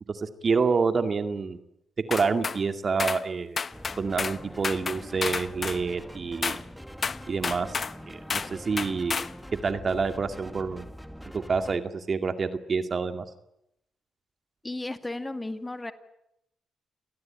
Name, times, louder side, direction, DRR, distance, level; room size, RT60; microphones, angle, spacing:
voice 1, 0.1-1.6 2.1-3.6 4.0-6.6 7.3-9.2 9.6-10.9 11.3-13.2, right 4 dB, 50° right, 8 dB, 2.2 m, -28 dB
sound 1, 2.1-2.6 3.0-3.2 3.6-4.4 4.6-5.8 6.4-6.6 7.0-7.9 8.3-8.5 8.8-9.3, left 5 dB, 50° left, 0.9 m, -30 dB
sound 2, 3.7-11.8, equal, ahead, 2.0 m, -44 dB
voice 2, 14.6-15.9, left 2 dB, 20° left, 9 dB, 2.3 m, -34 dB
28.0 x 19.0 x 8.9 m, 0.82 s
hypercardioid pair, 45°, 0 cm